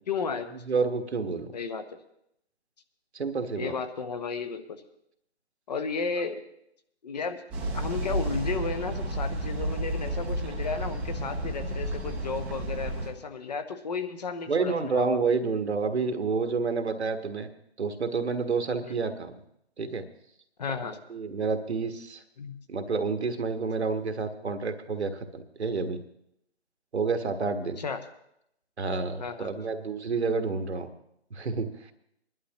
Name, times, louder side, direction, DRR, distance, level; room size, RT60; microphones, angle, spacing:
voice 1, 0.1-0.5 1.5-2.0 3.5-4.8 5.7-6.4 7.0-7.4 7.7-15.2 18.8-19.0 20.6-21.0 22.4-22.6 27.8-28.0 29.2-29.6, left 5 dB, 40° left, 8 dB, 0.9 m, -33 dB
voice 2, 0.7-1.5 3.1-3.7 14.5-17.5 17.8-19.4 19.8-20.0 20.8-22.2 22.7-26.0 26.9-27.8 28.8-30.9 31.3-31.7, right 4 dB, 70° right, 7 dB, 1.4 m, -29 dB
sound 1, 7.5-13.1, right 1 dB, 5° right, 0.7 m, -31 dB
21.5 x 11.0 x 3.0 m, 0.75 s
figure-of-eight pair, 150°, 34 cm